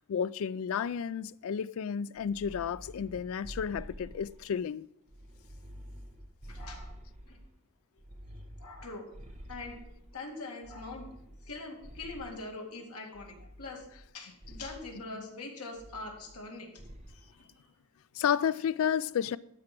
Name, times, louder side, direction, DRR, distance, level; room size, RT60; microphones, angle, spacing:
voice 1, 0.0-4.9 15.1-15.3 18.2-19.4, left 8 dB, 65° left, 0.3 m, -32 dB
sound 1, 2.2-4.6 5.1-7.5 8.0-10.2 10.6-12.5 13.1-14.1 14.4-14.9 15.8-16.5 16.8-17.2, equal, 30° right, 1.1 m, -48 dB
voice 2, 6.5-6.9 7.2-7.4 8.6-9.1 9.5-9.8 10.1-11.1 11.4-13.9 14.1-16.8 17.1-17.5, left 3 dB, 85° left, 2.2 m, -43 dB
12.5 x 4.8 x 6.0 m
head